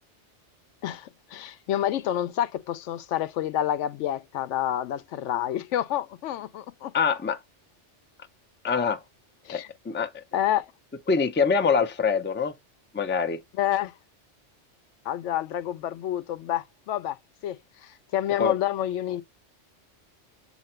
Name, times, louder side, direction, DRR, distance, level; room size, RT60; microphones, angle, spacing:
voice 1, 0.8-6.9 8.6-8.8 9.4-9.7 10.3-10.7 13.5-13.9 15.1-17.2 17.4-17.6 17.8-19.2, left 12 dB, 90° left, 0.9 m, -28 dB
voice 2, 6.9-7.4 8.6-9.0 9.5-10.2 11.1-12.5 12.9-13.4 18.4-18.5, left 5 dB, 20° left, 0.3 m, -24 dB
7.6 x 2.9 x 4.3 m
omnidirectional pair, 1.2 m